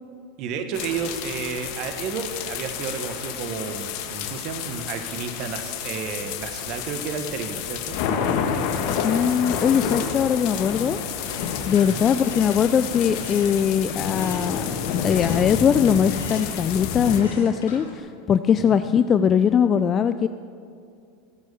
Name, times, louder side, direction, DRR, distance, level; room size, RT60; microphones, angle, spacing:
voice 1, 0.4-8.0 11.8-12.1 18.7-18.8, right 6 dB, 50° right, 7 dB, 1.5 m, -31 dB
sound 1, 0.7-17.2, left 7 dB, 60° left, 1.5 m, -29 dB
voice 2, 8.9-11.0 11.7-14.6 15.0-20.3, left 8 dB, 35° left, 11 dB, 0.4 m, -21 dB
sound 2, 10.7-18.0, left 4 dB, 85° left, 2.3 m, -40 dB
15.5 x 8.2 x 7.0 m, 2.3 s
hypercardioid pair, 105°, 0 cm